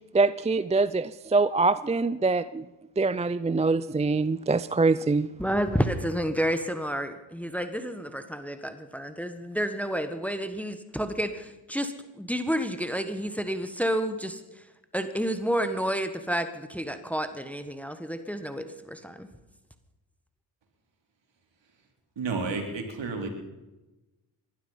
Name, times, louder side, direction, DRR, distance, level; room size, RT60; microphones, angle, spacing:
voice 1, 0.1-2.6 3.0-5.3, right 3 dB, 15° right, 16 dB, 0.4 m, -24 dB
voice 2, 5.4-14.4 14.9-19.3, equal, 5° left, 9 dB, 1.5 m, -30 dB
voice 3, 22.2-23.3, right 4 dB, 60° right, 3 dB, 3.7 m, -31 dB
19.5 x 12.0 x 5.7 m, 1.1 s
supercardioid pair, 55°, 48 cm